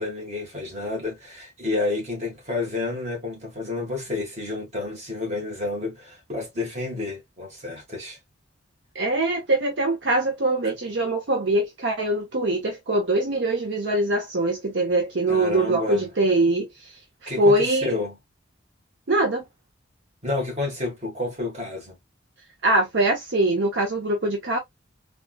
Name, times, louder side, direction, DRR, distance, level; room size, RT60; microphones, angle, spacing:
voice 1, 0.0-8.2 10.6-10.7 15.3-16.1 17.3-18.2 20.2-22.0, left 3 dB, 35° right, 1.5 m, -30 dB
voice 2, 8.9-16.9 17.2-17.9 19.1-19.4 22.6-24.6, right 2 dB, 60° right, 0.7 m, -23 dB
3.5 x 2.4 x 2.2 m
head